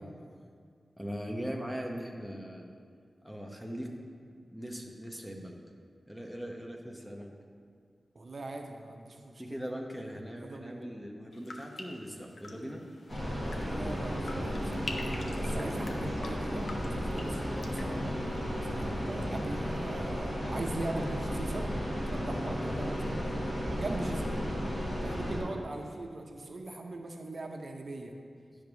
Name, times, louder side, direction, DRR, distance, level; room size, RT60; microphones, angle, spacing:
voice 1, 1.0-2.7 3.2-3.9 4.5-5.6 6.1-7.3 9.4-12.8 15.5-16.1, equal, 5° left, 1 dB, 0.9 m, -40 dB
voice 2, 8.1-9.4 10.4-10.8 13.6-14.9 15.4-17.4 17.7-18.2 18.6-21.7 22.1-23.4 23.7-24.4 25.0-28.1, right 2 dB, 55° right, 3 dB, 0.6 m, -40 dB
sound 1, 11.3-19.3 19.5-20.1, left 2 dB, 75° left, 0.8 m, -47 dB
sound 2, 13.1-25.4, equal, 35° left, 2.5 m, -34 dB
10.5 x 3.5 x 6.9 m, 2.1 s
wide cardioid pair, 105°, 0 cm